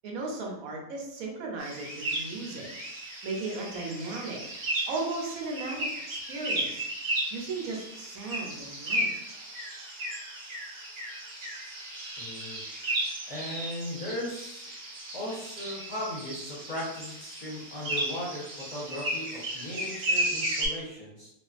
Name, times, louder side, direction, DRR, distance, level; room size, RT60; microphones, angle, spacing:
voice 1, 0.0-2.7 3.2-4.4 4.9-6.8 7.3-9.1, right 3 dB, 75° right, 0 dB, 1.0 m, -36 dB
sound 1, 1.6-20.7, right 1 dB, 55° right, 0.8 m, -34 dB
voice 2, 12.2-12.6 13.3-14.7 15.1-21.3, left 1 dB, 40° left, -8 dB, 0.8 m, -37 dB
2.4 x 2.4 x 2.4 m, 0.79 s
omnidirectional pair, 1.5 m